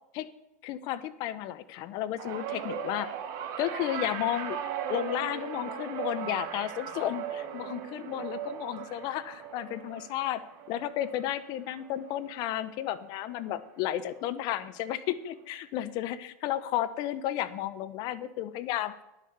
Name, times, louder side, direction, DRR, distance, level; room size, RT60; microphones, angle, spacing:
voice 1, 0.6-3.1 3.6-4.6 4.9-10.4 10.7-19.0, left 12 dB, 50° left, 14 dB, 0.8 m, -33 dB
sound 1, 2.2-12.6 13.0-13.4 14.5-14.6, right 8 dB, 45° right, 1.9 m, -38 dB
10.5 x 6.7 x 7.0 m, 0.91 s
hypercardioid pair, 95°, 9 cm